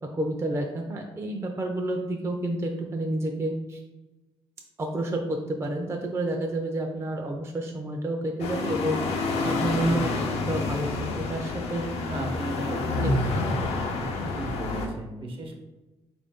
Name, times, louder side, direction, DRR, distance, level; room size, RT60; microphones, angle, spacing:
voice 1, 0.0-3.8 4.8-10.1 10.5-10.9 11.2-11.8 12.7-13.2 14.2-14.4, right 1 dB, 25° right, 2 dB, 0.4 m, -30 dB
sound 1, 8.4-14.9, left 3 dB, 90° left, 0.6 m, -28 dB
voice 2, 9.7-10.2 12.0-13.1 14.3-15.6, right 1 dB, 60° right, 2 dB, 0.9 m, -35 dB
3.8 x 2.6 x 3.5 m, 1.1 s
cardioid pair, 85°, 10 cm